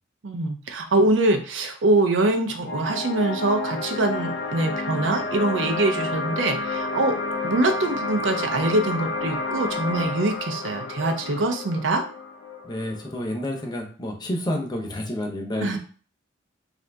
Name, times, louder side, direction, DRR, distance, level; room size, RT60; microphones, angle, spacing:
voice 1, 0.2-7.2 7.4-12.0 15.6-15.8, right 2 dB, 80° right, 5 dB, 0.6 m, -23 dB
sound 1, 2.6-13.7, left 3 dB, 80° left, 0.5 m, -30 dB
voice 2, 12.6-15.8, left 1 dB, 25° left, 1 dB, 0.6 m, -29 dB
2.6 x 2.5 x 3.3 m, 0.40 s
head